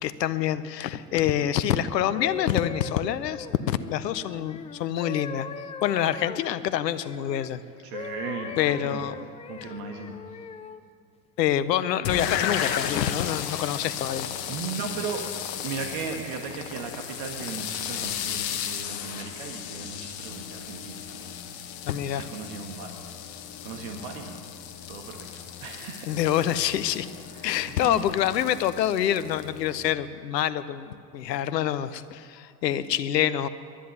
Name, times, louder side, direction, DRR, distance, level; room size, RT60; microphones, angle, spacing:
voice 1, 0.0-5.5 5.8-7.6 8.6-9.2 11.4-14.3 21.9-22.3 26.1-27.1 27.4-33.5, left 11 dB, 80° left, 15 dB, 0.7 m, -26 dB
sound 1, 1.9-7.5 7.9-10.8 11.5-11.7, left 6 dB, 15° left, 0.4 m, -40 dB
voice 2, 7.8-9.1 9.5-10.4 14.5-15.3 15.6-21.3 22.0-23.0 23.6-24.4 24.9-26.2 27.3-28.1, right 5 dB, 60° right, 3 dB, 1.6 m, -37 dB
sound 2, 12.0-29.9, left 9 dB, 45° left, 1.3 m, -35 dB
11.0 x 10.0 x 9.7 m, 2.3 s
hypercardioid pair, 85°, 49 cm